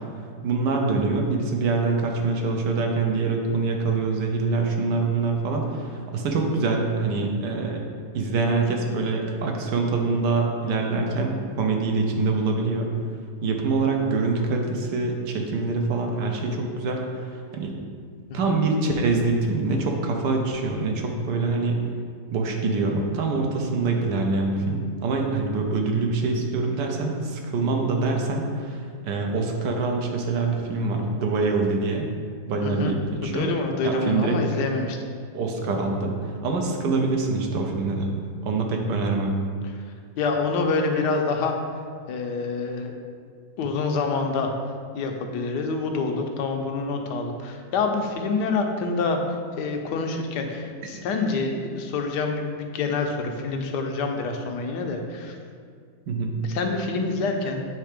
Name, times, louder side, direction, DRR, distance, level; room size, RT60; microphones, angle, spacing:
voice 1, 0.4-7.8 8.1-12.9 13.4-17.7 18.3-21.8 22.3-32.1 32.5-33.5 33.8-34.4 35.3-38.1 38.4-39.4 56.1-56.4, right 3 dB, 90° right, 2 dB, 1.5 m, -25 dB
voice 2, 32.6-32.9 33.2-35.0 40.2-41.5 42.1-42.9 43.6-44.5 44.9-49.2 49.6-55.3 56.5-57.7, left 4 dB, 85° left, 3 dB, 1.3 m, -26 dB
7.6 x 3.4 x 5.0 m, 2.1 s
omnidirectional pair, 1.8 m